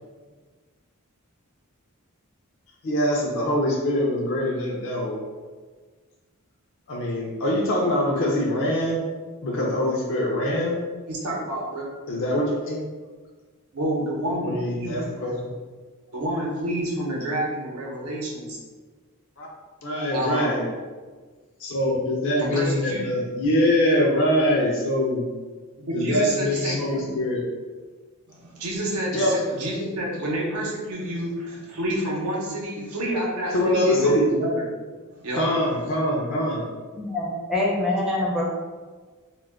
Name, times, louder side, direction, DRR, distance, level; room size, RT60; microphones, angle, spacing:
voice 1, 2.8-5.2 6.9-9.0 9.4-10.8 12.1-12.8 14.4-15.3 19.4-19.5 19.8-20.6 21.6-25.2 25.9-27.4 29.1-29.3 33.5-34.2 35.3-36.6, left 1 dB, 60° left, -2 dB, 0.4 m, -23 dB
voice 2, 11.1-11.8 13.7-15.0 16.1-18.6 20.1-20.6 22.4-23.2 25.8-27.1 28.3-34.6 35.1-35.5, right 1 dB, 75° right, -3 dB, 0.7 m, -29 dB
voice 3, 37.0-38.4, left 1 dB, 5° right, -5 dB, 0.5 m, -25 dB
2.2 x 2.1 x 3.4 m, 1.4 s
head